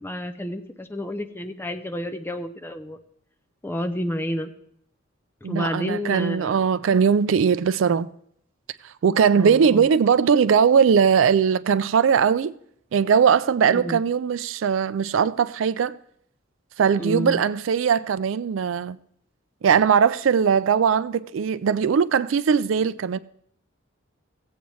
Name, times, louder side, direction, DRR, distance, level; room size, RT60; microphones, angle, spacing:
voice 1, 0.0-3.0 3.6-4.5 5.4-6.7 9.3-9.9 13.7-14.0 17.0-17.4, left 1 dB, 10° left, 0.6 m, -30 dB
voice 2, 5.4-8.1 8.8-12.5 12.9-16.0 16.8-19.0 19.6-23.2, right 6 dB, 70° right, 0.4 m, -20 dB
17.0 x 8.2 x 3.1 m
head